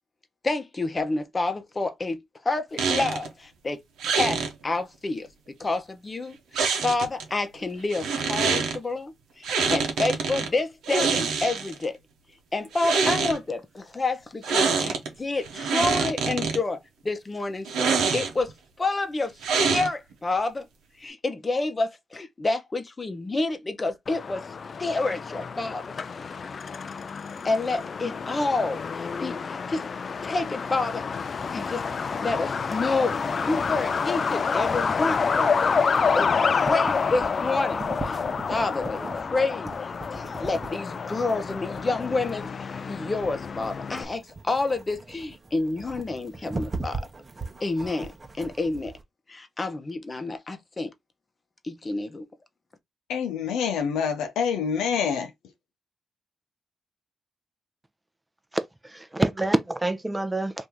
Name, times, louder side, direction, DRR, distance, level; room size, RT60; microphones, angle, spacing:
voice 1, 0.4-3.8 4.0-5.3 5.6-12.0 12.5-18.5 18.8-19.3 19.7-20.7 21.0-24.4 24.8-25.9 26.2-26.3 27.4-29.9 30.2-31.1 31.5-31.9 32.2-38.2 38.5-47.0 47.6-49.0 49.3-50.9 51.6-52.3, left 3 dB, 35° left, 0.8 m, -29 dB
sound 1, 2.8-3.3 4.0-4.5 6.5-7.2 7.9-8.8 9.4-10.5 10.8-11.8 12.7-13.4 14.4-15.1 15.4-16.6 17.7-18.5 19.4-20.1, right 5 dB, 85° right, 0.8 m, -25 dB
Truck, 24.1-44.1, left 5 dB, 55° left, 0.3 m, -28 dB
sound 2, 32.7-49.0, right 3 dB, 35° right, 0.9 m, -40 dB
voice 2, 53.1-55.3, left 7 dB, 90° left, 0.6 m, -26 dB
voice 3, 58.5-60.7, right 2 dB, 15° right, 0.6 m, -27 dB
2.8 x 2.7 x 3.5 m
supercardioid pair, 50°, 0 cm